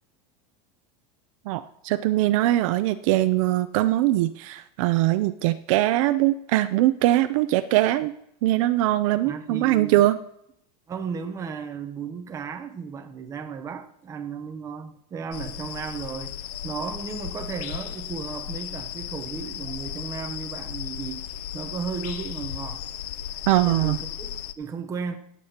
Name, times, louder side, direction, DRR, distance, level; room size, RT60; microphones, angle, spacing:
voice 1, 1.5-8.1 8.4-10.2 23.5-24.0, right 15 dB, 60° right, 0.5 m, -22 dB
voice 2, 9.2-10.0 10.9-21.3 21.5-22.9 23.6-25.2, right 6 dB, 15° right, 0.8 m, -34 dB
sound 1, 15.3-24.5, left 10 dB, 80° left, 0.7 m, -35 dB
24.5 x 8.4 x 2.9 m
supercardioid pair, 170°, 20 cm